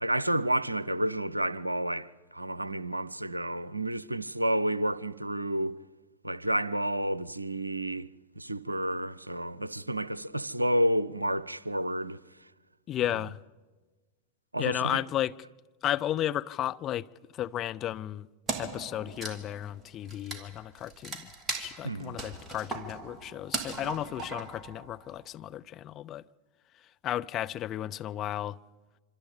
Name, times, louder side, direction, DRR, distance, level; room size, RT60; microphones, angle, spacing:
voice 1, 0.0-5.8 6.2-8.1 8.4-12.2 13.1-13.2 14.5-15.0 21.8-22.2, right 1 dB, 85° right, 0.7 m, -30 dB
voice 2, 12.9-13.4 14.6-15.3 15.8-17.1 17.3-18.3 18.6-21.3 21.6-26.2 27.0-28.6, left 12 dB, 30° left, 0.6 m, -33 dB
Wood, 18.5-25.2, right 3 dB, 20° right, 2.7 m, -38 dB
26.0 x 26.0 x 5.2 m
figure-of-eight pair, 90°, 0 cm